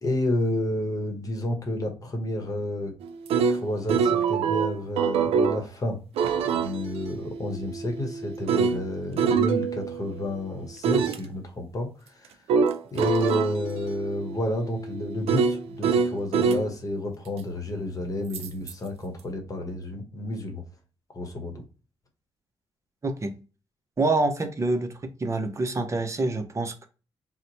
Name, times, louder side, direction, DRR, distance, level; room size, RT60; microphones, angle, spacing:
voice 1, 0.0-2.9 3.5-6.0 6.4-12.4 12.9-20.6 21.1-21.6, left 1 dB, 35° left, 0.9 m, -30 dB
sound 1, 3.0-5.6 6.2-10.3 10.8-11.2 12.5-16.7 18.3-18.7, right 6 dB, 90° right, 0.4 m, -25 dB
voice 2, 23.0-23.4 24.0-24.9 25.2-26.9, right 2 dB, 30° right, 0.6 m, -26 dB
2.9 x 2.1 x 4.0 m
cardioid pair, 90°, 10 cm